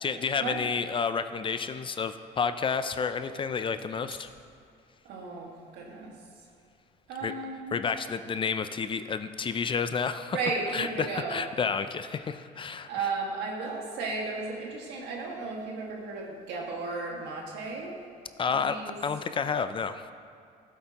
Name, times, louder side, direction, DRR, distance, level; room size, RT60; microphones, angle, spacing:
voice 1, 0.0-4.3 7.2-7.3 7.7-10.4 10.7-12.9 18.4-20.1, left 5 dB, 30° left, 11 dB, 0.4 m, -30 dB
voice 2, 5.1-6.1 7.1-7.8 9.6-9.7 10.3-11.4 12.8-18.0 18.6-18.9, right 3 dB, 85° right, -1 dB, 1.9 m, -34 dB
15.0 x 8.5 x 3.0 m, 2.4 s
cardioid pair, 110°, 17 cm